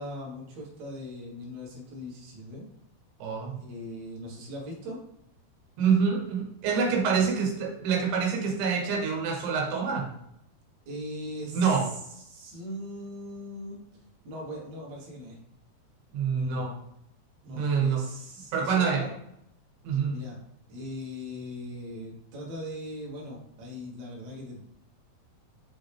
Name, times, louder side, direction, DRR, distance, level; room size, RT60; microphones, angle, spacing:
voice 1, 0.0-2.7 3.6-5.0 7.2-7.3 10.9-11.7 12.3-13.8 14.2-15.4 16.3-16.7 17.4-19.1 20.1-20.4 20.7-24.6, left 1 dB, 55° right, -3 dB, 2.3 m, -40 dB
voice 2, 3.2-3.5 5.8-10.1 11.5-11.8 16.1-16.8 17.5-18.0 18.5-19.0 19.8-20.2, right 6 dB, 85° right, 0 dB, 3.1 m, -26 dB
6.6 x 4.1 x 3.4 m, 0.76 s
omnidirectional pair, 4.5 m